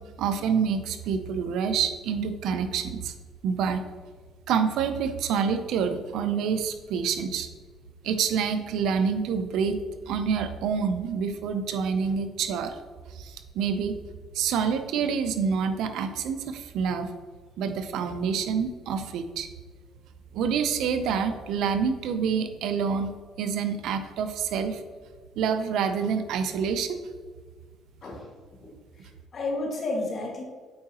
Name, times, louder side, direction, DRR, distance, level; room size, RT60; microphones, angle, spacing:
voice 1, 0.2-3.1 3.4-3.8 4.5-7.5 8.0-9.8 10.1-12.8 13.1-13.9 14.3-17.1 17.6-19.5 20.3-23.1 23.4-24.8 25.4-27.0, right 6 dB, 75° right, 9 dB, 0.6 m, -27 dB
voice 2, 28.6-30.4, left 2 dB, 45° left, -1 dB, 1.8 m, -33 dB
8.6 x 4.7 x 2.9 m, 1.5 s
cardioid pair, 100°, 0 cm